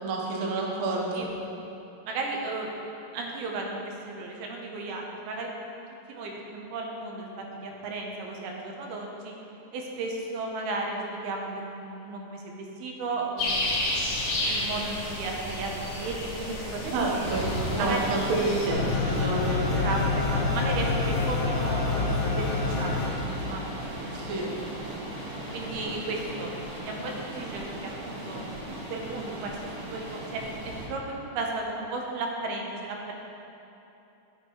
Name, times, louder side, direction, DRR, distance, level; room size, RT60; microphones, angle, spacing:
voice 1, 0.0-1.3 16.9-19.9 24.1-24.5, right 2 dB, 70° right, -2 dB, 1.6 m, -29 dB
voice 2, 2.1-2.7 3.1-5.5 6.1-7.3 7.5-9.3 9.7-13.9 14.4-17.2 17.8-18.1 19.7-23.7 25.5-26.5 26.8-29.5 29.8-30.4 30.9-33.1, right 3 dB, 90° right, 0 dB, 2.9 m, -34 dB
sound 1, 13.4-18.7, left 1 dB, 50° left, 1.8 m, -31 dB
sound 2, 17.2-30.8, equal, 45° right, 2.3 m, -35 dB
sound 3, 18.7-23.1, left 4 dB, 75° left, 2.6 m, -28 dB
12.0 x 6.6 x 3.0 m, 2.9 s
omnidirectional pair, 4.3 m